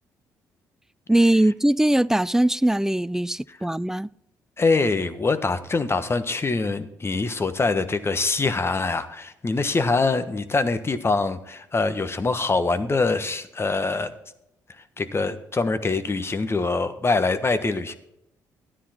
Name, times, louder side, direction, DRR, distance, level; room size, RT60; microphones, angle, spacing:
voice 1, 1.1-4.1, right 1 dB, 5° right, 0.3 m, -21 dB
voice 2, 4.6-14.1 14.7-17.9, left 3 dB, 30° left, 1.3 m, -24 dB
13.0 x 10.0 x 4.4 m
hypercardioid pair, 50°, 8 cm